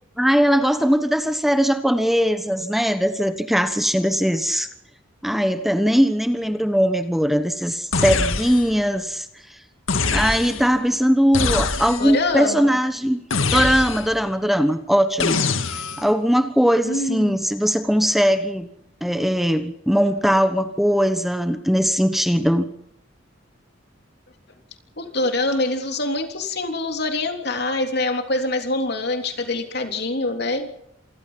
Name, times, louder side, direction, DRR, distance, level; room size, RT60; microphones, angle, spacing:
voice 1, 0.2-4.7 5.2-9.3 10.1-13.2 13.5-18.7 19.0-22.7, equal, ahead, 9 dB, 1.1 m, -20 dB
sound 1, 7.9-8.8 9.9-10.7 11.3-12.2 13.3-14.2 15.2-16.1, left 4 dB, 80° left, 2.1 m, -24 dB
voice 2, 12.0-12.8 16.9-17.4 25.0-30.7, left 2 dB, 50° left, 5 dB, 3.5 m, -25 dB
27.0 x 20.5 x 5.8 m, 0.77 s
head